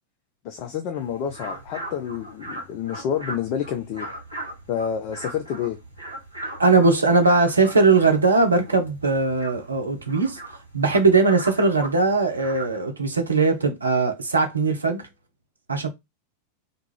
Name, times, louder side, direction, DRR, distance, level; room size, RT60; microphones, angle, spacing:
voice 1, 0.4-4.1 4.7-5.8, left 8 dB, 45° left, 0.4 m, -29 dB
sound 1, 0.9-12.8, right 1 dB, 90° left, 1.2 m, -39 dB
voice 2, 6.6-10.4 10.7-15.0 15.7-15.9, right 3 dB, 75° right, 0.5 m, -20 dB
2.5 x 2.3 x 3.1 m
figure-of-eight pair, 90°, 0 cm